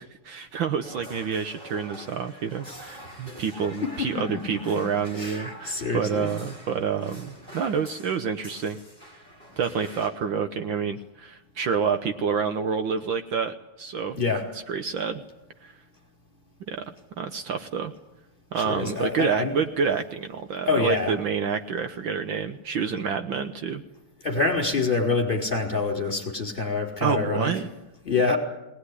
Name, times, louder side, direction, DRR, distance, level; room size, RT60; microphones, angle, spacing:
voice 1, 0.0-8.8 9.6-14.2 14.7-15.2 15.6-15.7 16.7-16.8 17.2-17.9 18.5-23.8 27.0-27.7, right 6 dB, 65° right, 8 dB, 1.7 m, -28 dB
sound 1, 0.8-10.1, equal, 20° right, 5.5 m, -45 dB
voice 2, 4.0-4.4 5.2-6.3 14.2-14.5 18.5-19.5 20.7-21.1 24.2-27.5 28.0-28.4, left 4 dB, 20° left, 1 dB, 4.8 m, -26 dB
21.5 x 19.5 x 9.9 m, 0.94 s
omnidirectional pair, 2.4 m